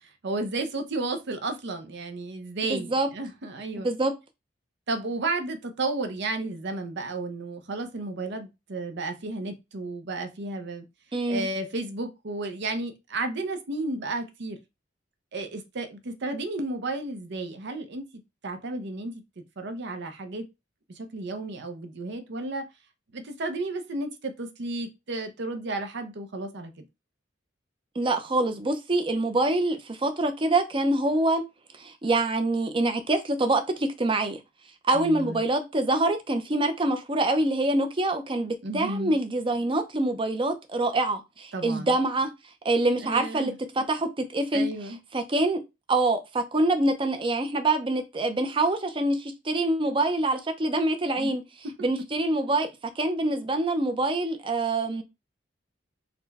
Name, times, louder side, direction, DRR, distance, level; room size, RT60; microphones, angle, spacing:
voice 1, 0.0-3.9 4.9-10.8 11.3-14.6 15.3-18.1 18.4-19.2 19.6-20.4 21.0-22.7 23.1-26.8 34.9-35.4 38.6-39.2 41.5-42.0 43.0-43.6 44.5-45.0 51.2-51.3 51.6-51.9, right 2 dB, 65° right, 0.7 m, -33 dB
voice 2, 2.6-3.1 3.8-4.1 11.1-11.5 28.0-31.4 31.8-34.4 34.9-42.3 42.6-44.7 45.1-45.6 45.9-51.4 51.8-52.7 53.0-55.0, right 2 dB, 25° right, 0.6 m, -25 dB
4.2 x 2.2 x 4.0 m
head